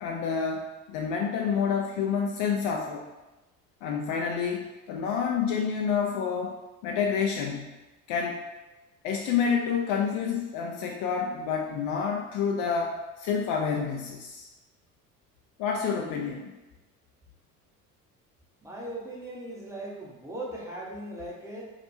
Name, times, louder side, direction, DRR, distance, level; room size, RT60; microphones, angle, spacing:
voice 1, 0.0-3.0 3.8-6.6 6.8-7.7 8.1-8.4 9.0-14.5 15.6-16.5, left 6 dB, 45° left, 0 dB, 0.4 m, -28 dB
voice 2, 18.6-21.6, right 1 dB, 5° right, -4 dB, 0.8 m, -38 dB
4.7 x 2.2 x 2.7 m, 1.1 s
figure-of-eight pair, 60°, 45 cm